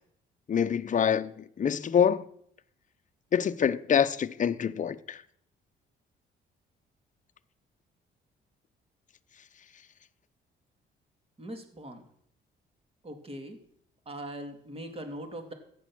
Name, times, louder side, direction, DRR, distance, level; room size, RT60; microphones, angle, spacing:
voice 1, 0.5-2.2 3.3-5.2, left 8 dB, 40° left, 0.7 m, -26 dB
voice 2, 11.4-12.0 13.0-13.6 14.1-15.5, right 1 dB, 30° right, 2.8 m, -41 dB
14.5 x 9.5 x 6.2 m
cardioid pair, 90°, 20 cm